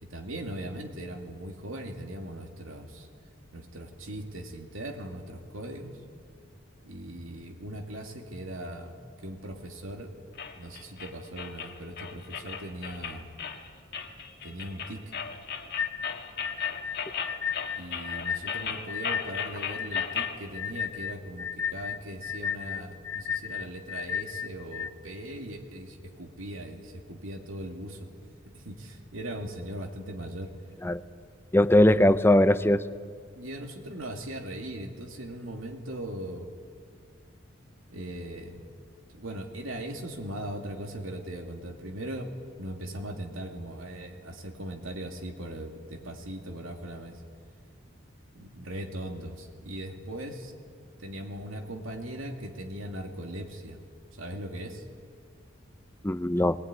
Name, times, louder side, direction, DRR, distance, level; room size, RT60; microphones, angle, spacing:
voice 1, 0.0-3.1 3.5-6.0 6.9-10.2 10.5-13.3 14.4-15.1 17.8-28.1 28.5-30.5 33.4-36.5 37.9-38.6 39.1-47.2 48.3-50.5 51.0-53.8 54.2-54.8, right 1 dB, 85° right, 3 dB, 2.5 m, -39 dB
sound 1, 10.4-20.4, left 6 dB, 55° left, 1.7 m, -37 dB
sound 2, 15.8-24.9, left 7 dB, 85° left, 0.9 m, -34 dB
voice 2, 31.5-32.9 56.0-56.6, left 1 dB, 10° left, 13 dB, 0.6 m, -20 dB
20.0 x 19.5 x 9.7 m, 2.1 s
head